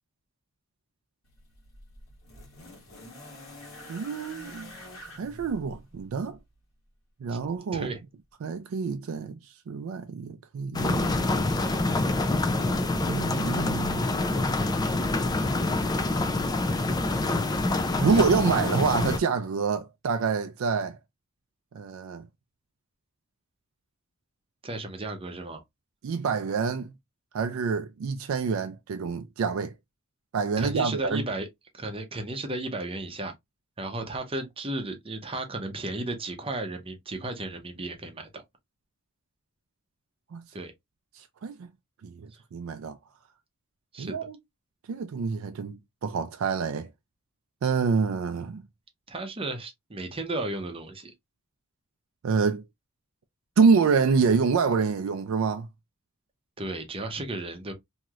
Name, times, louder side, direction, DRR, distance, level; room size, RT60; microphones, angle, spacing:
sound 1, 1.2-6.5 7.5-7.6, left 1 dB, 85° left, 1.2 m, -46 dB
voice 1, 3.9-4.7 5.2-6.4 7.2-8.0 8.4-11.1 13.0-14.2 18.0-21.0 21.7-22.3 26.0-26.9 27.3-29.7 30.3-31.2 40.3-40.5 41.1-41.7 42.0-43.0 44.0-44.4 44.9-46.9 47.6-48.6 52.2-52.6 53.6-55.7, right 5 dB, 85° right, 0.4 m, -27 dB
sound 2, 10.7-19.2, left 2 dB, 20° left, 0.3 m, -26 dB
voice 2, 24.6-25.6 30.6-31.5 31.7-33.3 33.8-38.4 40.5-40.7 43.9-44.2 49.1-51.1 56.6-57.7, right 2 dB, 25° right, 0.7 m, -34 dB
3.0 x 2.7 x 2.3 m
head